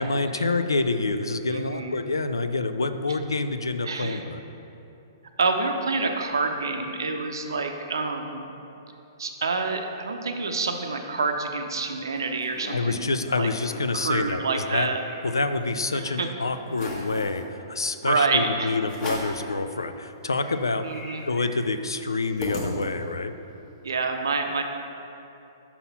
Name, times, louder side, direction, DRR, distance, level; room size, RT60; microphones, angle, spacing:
voice 1, 0.0-4.4 12.7-14.9 15.2-20.9 21.2-23.3, left 3 dB, 80° left, 9 dB, 0.3 m, -27 dB
voice 2, 1.5-2.0 3.8-4.2 5.4-8.4 9.2-13.5 13.9-15.0 15.9-16.3 18.0-18.8 20.8-21.3 23.8-24.6, right 3 dB, 70° right, 5 dB, 0.6 m, -27 dB
sound 1, 11.9-12.8 13.2-13.3 13.5-13.9 14.3-15.8 16.2-16.3 16.7-17.4 18.1-18.3 18.9-19.4 19.9-20.0 20.2-23.2, left 1 dB, 30° left, 1.3 m, -38 dB
5.9 x 4.0 x 5.4 m, 2.8 s
figure-of-eight pair, 115°, 2 cm